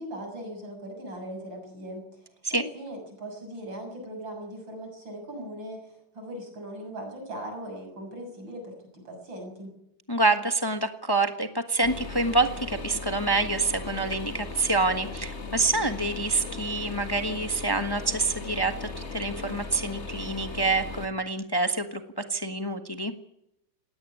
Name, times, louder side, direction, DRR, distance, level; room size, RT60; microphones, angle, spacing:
voice 1, 0.0-9.8, right 1 dB, 85° right, 3 dB, 7.8 m, -39 dB
voice 2, 10.1-23.1, right 3 dB, 15° left, 7 dB, 1.2 m, -27 dB
sound 1, 11.8-21.1, left 3 dB, 40° left, 1.9 m, -38 dB
19.0 x 17.5 x 9.9 m, 0.80 s
omnidirectional pair, 2.0 m